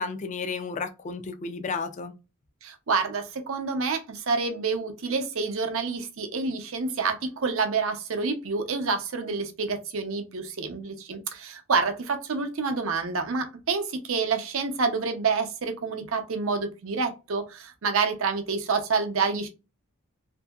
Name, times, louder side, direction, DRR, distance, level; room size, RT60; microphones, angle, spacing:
voice 1, 0.0-2.1, left 4 dB, 35° left, 0.3 m, -32 dB
voice 2, 2.6-19.5, right 4 dB, 65° right, 0.6 m, -28 dB
2.7 x 2.7 x 2.3 m
head